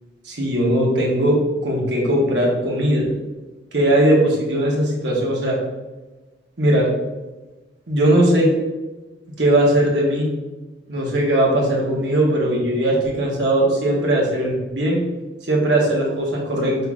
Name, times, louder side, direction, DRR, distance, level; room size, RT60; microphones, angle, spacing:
voice 1, 0.2-1.4 1.6-3.1 3.7-5.6 6.6-6.9 7.9-8.5 9.4-10.3 10.9-15.0 15.5-16.8, right 1 dB, 70° right, -3 dB, 1.3 m, -19 dB
5.4 x 3.9 x 2.4 m, 1.1 s
head